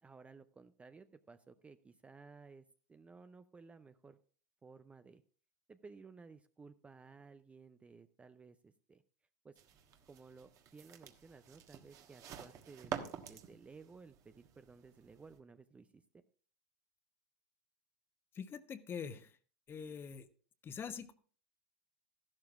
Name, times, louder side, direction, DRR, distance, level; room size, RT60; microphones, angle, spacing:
voice 1, 0.0-4.2 4.6-5.2 5.7-9.0 9.4-9.6 10.1-16.2, right 4 dB, 15° right, 11 dB, 0.5 m, -57 dB
sound 1, 9.6-15.4, right 8 dB, 40° right, 1.4 m, -49 dB
voice 2, 18.3-19.4 19.7-20.3 20.6-21.1, left 6 dB, 25° left, 11 dB, 1.0 m, -44 dB
13.5 x 11.5 x 2.5 m, 0.44 s
hypercardioid pair, 100°, 9 cm